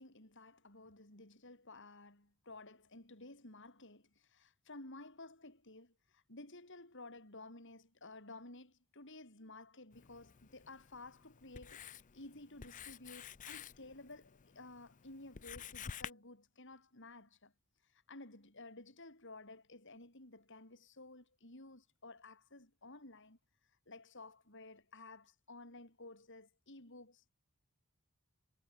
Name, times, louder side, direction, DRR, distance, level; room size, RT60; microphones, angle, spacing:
voice 1, 0.0-17.5 17.9-23.4 23.9-27.2, left 2 dB, 60° left, 6.6 m, -54 dB
Writing, 9.9-16.1, left 7 dB, 35° left, 0.5 m, -51 dB
head